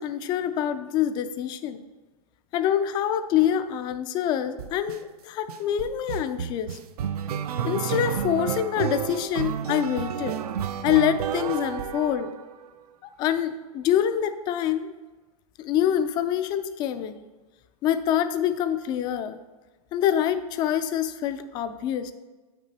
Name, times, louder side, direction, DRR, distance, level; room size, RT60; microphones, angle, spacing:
voice 1, 0.0-1.8 2.5-6.8 7.6-10.4 10.8-12.3 13.2-14.9 15.6-17.2 17.8-19.4 19.9-22.1, left 10 dB, 20° left, 11 dB, 0.3 m, -25 dB
sound 1, 4.6-5.0 5.5-12.7, right 8 dB, 75° right, 0.5 m, -31 dB
8.2 x 6.0 x 2.8 m, 1.2 s
hypercardioid pair, 135°, 20 cm